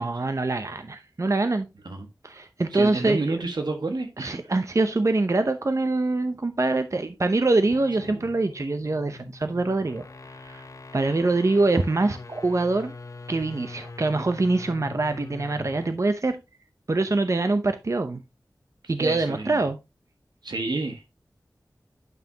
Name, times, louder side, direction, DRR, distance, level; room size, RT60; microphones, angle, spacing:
voice 1, 0.0-1.7 2.2-3.3 4.2-10.0 10.4-10.6 10.9-12.9 13.3-16.4 16.9-18.2 18.9-19.8, right 2 dB, 45° right, 0.7 m, -24 dB
voice 2, 2.7-4.4 8.0-8.3 19.0-19.7 20.4-21.0, right 3 dB, 90° right, 1.5 m, -30 dB
sound 1, 7.5-16.0, left 3 dB, 50° left, 0.6 m, -42 dB
9.2 x 5.7 x 2.8 m
wide cardioid pair, 60°, 7 cm